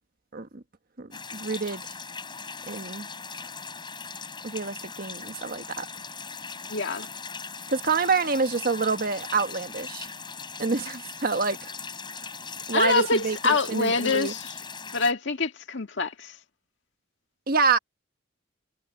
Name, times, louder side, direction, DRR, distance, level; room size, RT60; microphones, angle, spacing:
voice 1, 0.3-0.6 1.0-1.8 2.7-3.1 4.4-5.9 7.7-10.1 10.6-11.7 12.7-14.3 17.5-17.8, right 4 dB, 50° right, 1.3 m, -27 dB
sound 1, 1.1-15.1, left 5 dB, 25° left, 4.5 m, -39 dB
voice 2, 6.7-7.1 12.7-14.4 14.9-16.3, left 4 dB, 65° left, 1.9 m, -25 dB
head